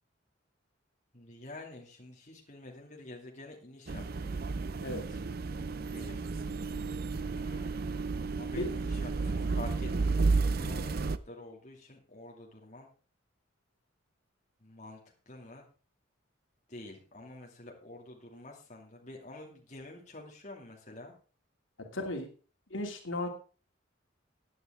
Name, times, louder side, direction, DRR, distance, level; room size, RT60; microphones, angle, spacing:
voice 1, 1.1-4.3 5.7-6.3 7.1-7.8 8.3-9.9 10.5-12.9 14.6-15.0 15.3-15.7 16.7-21.1, left 2 dB, 35° left, 0 dB, 2.4 m, -48 dB
sound 1, 3.9-11.2, right 4 dB, 50° right, 0.6 m, -32 dB
voice 2, 21.9-22.3 22.7-23.3, left 2 dB, 75° left, 2 dB, 2.7 m, -35 dB
15.5 x 9.5 x 3.7 m, 0.37 s
head